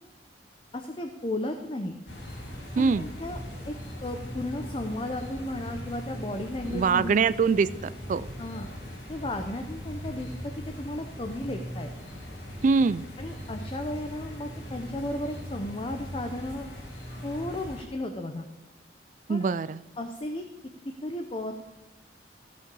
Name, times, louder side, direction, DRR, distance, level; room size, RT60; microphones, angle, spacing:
voice 1, 0.7-1.9 2.8-3.4 3.7-3.8 4.0-7.2 8.4-8.7 9.1-11.9 13.2-16.7 17.2-18.5 19.3-19.4 20.0-20.4 21.0-21.5, left 1 dB, 30° left, 5 dB, 0.7 m, -34 dB
sound 1, 2.1-17.8, equal, 65° left, 2.9 m, -40 dB
voice 2, 2.8-3.1 6.7-7.7 8.1-8.3 12.6-13.1 19.3-19.8, right 5 dB, 45° right, 16 dB, 0.3 m, -23 dB
16.0 x 5.7 x 5.4 m, 1.1 s
head